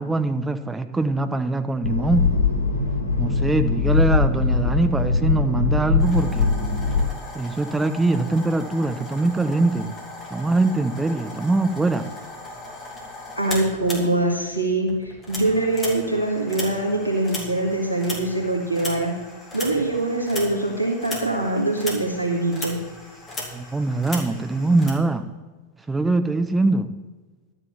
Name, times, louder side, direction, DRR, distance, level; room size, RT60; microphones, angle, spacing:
voice 1, 0.0-2.2 3.2-6.5 7.3-9.9 10.3-12.0 23.5-25.3 25.9-26.9, right 2 dB, 10° right, 9 dB, 0.9 m, -22 dB
sound 1, 1.8-7.0, left 4 dB, 90° right, 3.0 m, -21 dB
sound 2, 6.0-14.6 14.9-24.9, left 2 dB, 20° left, 3.7 m, -37 dB
voice 2, 13.4-19.1 19.5-22.8, right 2 dB, 90° left, -1 dB, 2.0 m, -23 dB
12.0 x 6.6 x 7.4 m, 1.3 s
figure-of-eight pair, 90°, 0 cm